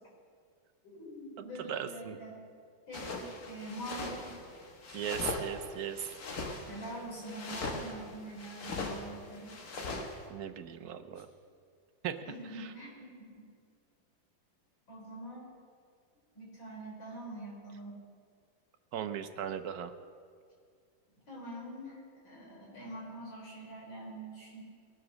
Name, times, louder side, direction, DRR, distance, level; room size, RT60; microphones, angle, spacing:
voice 1, 0.8-2.5 2.9-4.4 6.7-9.6 12.3-13.5 14.9-15.4 16.4-18.0 21.3-24.6, right 1 dB, 85° left, -4 dB, 5.5 m, -44 dB
voice 2, 1.7-2.2 4.9-6.1 10.3-11.3 12.0-12.2 12.5-12.7 18.9-19.9, right 9 dB, 60° right, 9 dB, 1.2 m, -37 dB
sound 1, 2.9-10.2, left 3 dB, 55° left, 1.8 m, -40 dB
20.5 x 7.7 x 6.4 m, 2.2 s
omnidirectional pair, 2.1 m